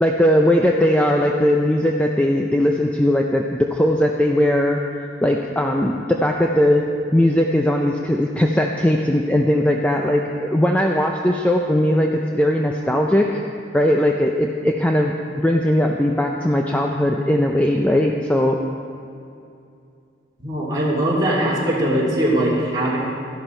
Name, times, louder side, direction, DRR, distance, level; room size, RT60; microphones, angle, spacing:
voice 1, 0.0-6.9 7.1-13.4 13.7-18.6, left 1 dB, 5° left, 1 dB, 0.4 m, -19 dB
voice 2, 20.4-23.0, right 1 dB, 20° right, -7 dB, 2.7 m, -20 dB
13.5 x 11.0 x 4.4 m, 2.5 s
head